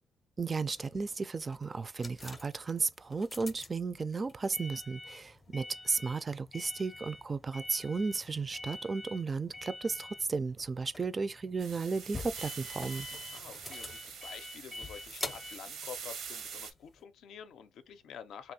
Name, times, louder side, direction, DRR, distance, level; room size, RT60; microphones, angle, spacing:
voice 1, 0.4-13.1, right 4 dB, 30° right, 0.3 m, -34 dB
sound 1, 0.6-17.0, left 2 dB, 25° left, 0.5 m, -47 dB
sound 2, 11.6-16.7, right 6 dB, 80° right, 0.7 m, -44 dB
voice 2, 13.3-18.5, left 8 dB, 75° left, 0.5 m, -49 dB
3.0 x 2.4 x 2.7 m
cardioid pair, 90°, 0 cm